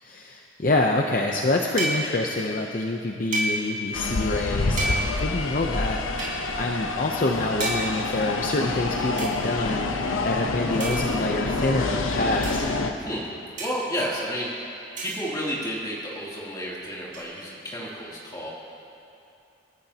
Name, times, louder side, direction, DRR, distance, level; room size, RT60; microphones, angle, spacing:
voice 1, 0.0-12.7, left 2 dB, 45° left, 1 dB, 0.7 m, -27 dB
sound 1, 1.8-2.3 3.3-3.9 4.8-5.4 6.2-6.4 7.6-8.1 9.2-9.3 10.8-11.4 12.4-12.7 13.6-14.0 15.0-15.4 17.1-17.2, right 1 dB, 40° right, 4.0 m, -30 dB
sound 2, 3.9-12.9, left 3 dB, 85° left, 0.8 m, -27 dB
voice 2, 13.6-14.7 15.0-18.5, equal, 20° left, -6 dB, 2.9 m, -31 dB
28.5 x 13.0 x 2.9 m, 2.7 s
head